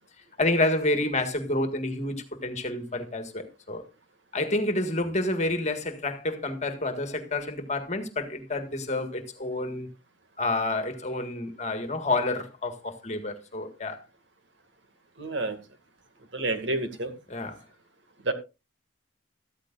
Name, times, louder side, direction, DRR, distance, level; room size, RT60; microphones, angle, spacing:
voice 1, 0.4-3.8 4.3-9.9 10.4-14.0 17.3-17.6, left 2 dB, 35° left, 1.7 m, -29 dB
voice 2, 15.2-15.6 16.3-17.1 18.2-18.3, right 2 dB, 65° right, 2.2 m, -29 dB
14.0 x 13.5 x 2.6 m
head